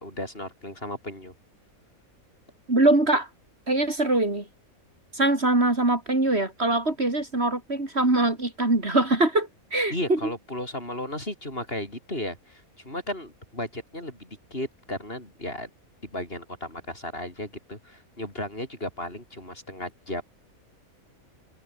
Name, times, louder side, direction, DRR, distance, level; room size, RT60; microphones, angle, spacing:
voice 1, 0.0-1.3 9.9-15.7 16.0-20.2, left 1 dB, 40° left, 7.7 m, -35 dB
voice 2, 2.7-3.3 3.7-4.5 5.1-10.2, right 2 dB, 45° right, 4.0 m, -23 dB
omnidirectional pair, 1.5 m